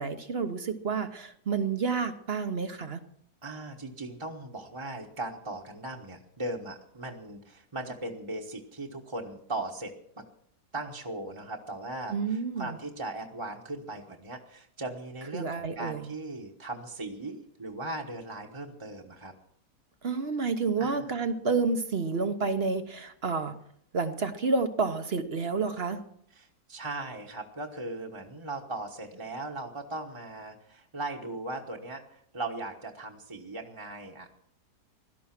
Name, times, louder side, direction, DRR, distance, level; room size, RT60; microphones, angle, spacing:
voice 1, 0.0-3.0 12.1-12.8 15.3-16.1 20.0-23.6 23.9-26.0, right 4 dB, 45° right, 9 dB, 1.1 m, -29 dB
voice 2, 3.4-10.2 10.7-19.3 20.8-21.1 26.3-34.3, right 2 dB, 20° right, 0 dB, 1.2 m, -38 dB
17.0 x 12.5 x 6.0 m, 0.65 s
omnidirectional pair, 1.7 m